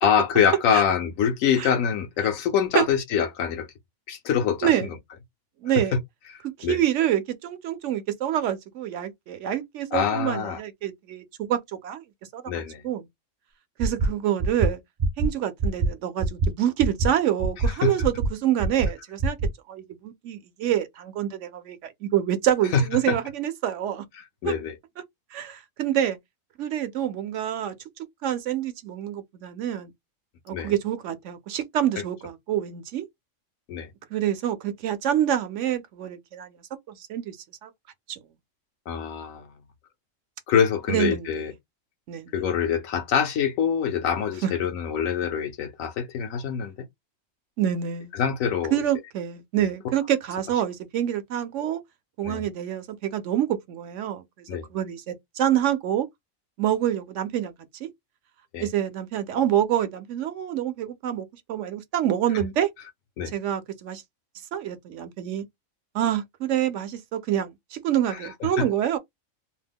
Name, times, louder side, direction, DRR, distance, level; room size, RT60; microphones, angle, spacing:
voice 1, 0.0-3.7 4.1-5.0 5.9-6.0 6.6-6.8 9.9-10.6 12.5-12.8 17.8-17.9 22.7-22.8 23.1-23.2 24.2-24.8 30.5-30.7 32.0-32.1 33.7-33.9 38.9-39.5 40.5-41.5 42.3-46.7 48.1-48.7 49.6-49.7 52.2-52.4 54.5-54.7 58.5-58.7 62.3-62.4 63.2-63.3 68.1-68.7, left 7 dB, 80° left, 1.1 m, -25 dB
voice 2, 5.6-5.9 6.4-12.0 12.3-13.1 13.8-14.8 15.2-19.4 19.7-24.1 24.4-24.5 25.3-26.2 26.6-29.9 30.5-33.1 34.1-36.5 36.9-37.4 37.6-37.7 38.1-38.2 40.9-41.3 42.1-42.3 44.4-44.5 47.6-48.1 48.7-51.8 52.2-54.2 54.7-56.1 56.6-57.9 58.6-62.7 63.3-64.0 64.5-65.5 65.9-69.0, right 11 dB, 70° right, 0.9 m, -27 dB
sound 1, 13.8-14.1 14.4-14.7 15.0-15.3 15.6-15.9 16.2-16.5 16.8-17.1 17.4-17.7 18.0-18.3 18.6-18.9 19.2-19.5, right 3 dB, 55° right, 0.5 m, -23 dB
2.7 x 2.1 x 3.4 m
omnidirectional pair, 1.4 m